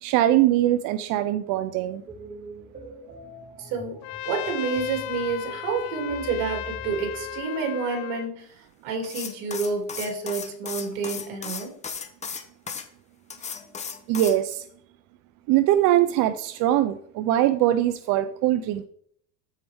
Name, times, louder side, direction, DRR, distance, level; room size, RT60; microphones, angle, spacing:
voice 1, 0.0-2.0 14.1-14.6 15.5-18.8, right 13 dB, 40° right, 10 dB, 0.5 m, -22 dB
sound 1, 2.1-7.4, right 1 dB, 20° right, 4.1 m, -43 dB
voice 2, 3.6-4.0 4.3-8.5 8.8-11.7, right 4 dB, 60° right, 3 dB, 2.7 m, -29 dB
Trumpet, 4.0-8.3, left 15 dB, 50° left, 0.7 m, -36 dB
sound 2, 9.0-12.8 13.3-14.4, left 6 dB, 15° left, 0.7 m, -35 dB
13.5 x 4.6 x 3.5 m, 0.63 s
supercardioid pair, 135°, 50 cm